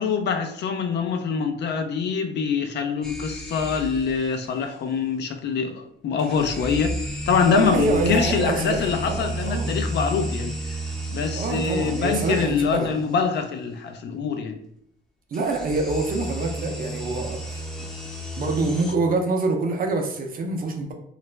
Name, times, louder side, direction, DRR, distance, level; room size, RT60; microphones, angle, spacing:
voice 1, 0.0-7.0 7.3-10.5 11.1-14.6, left 6 dB, 60° left, 6 dB, 0.4 m, -24 dB
sound 1, 3.0-4.3 6.2-12.9 15.3-18.9, right 1 dB, 5° left, 0.5 m, -32 dB
voice 2, 7.5-9.7 11.3-12.9 15.3-17.6 18.4-20.9, right 3 dB, 45° right, 3 dB, 0.5 m, -26 dB
2.4 x 2.0 x 3.1 m, 0.70 s
cardioid pair, 90°, 20 cm